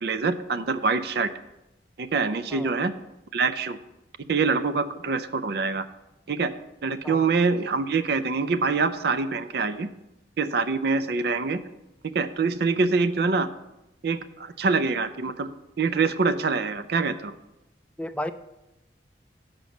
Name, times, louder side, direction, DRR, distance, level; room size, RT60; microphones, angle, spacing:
voice 1, 0.0-1.3 2.0-2.9 3.3-3.8 4.3-5.8 6.3-6.5 6.8-9.9 10.4-11.6 12.1-13.5 14.0-15.5 15.8-17.3, right 4 dB, 60° right, 11 dB, 0.5 m, -25 dB
voice 2, 18.0-18.3, left 1 dB, 5° left, 9 dB, 0.3 m, -33 dB
7.6 x 5.2 x 7.1 m, 0.93 s
head